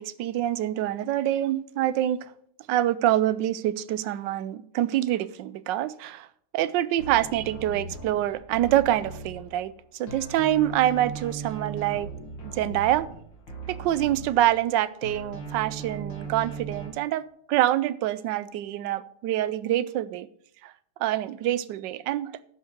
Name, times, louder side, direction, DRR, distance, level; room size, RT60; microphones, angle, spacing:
voice 1, 0.0-2.3 2.7-6.3 6.5-12.1 12.4-13.1 13.7-20.3 20.6-20.7 21.0-22.4, right 13 dB, 75° right, 15 dB, 1.1 m, -26 dB
sound 1, 7.0-9.8 10.1-14.7 15.0-16.9, right 4 dB, 60° left, 2.7 m, -38 dB
11.5 x 5.6 x 6.5 m, 0.66 s
omnidirectional pair, 2.3 m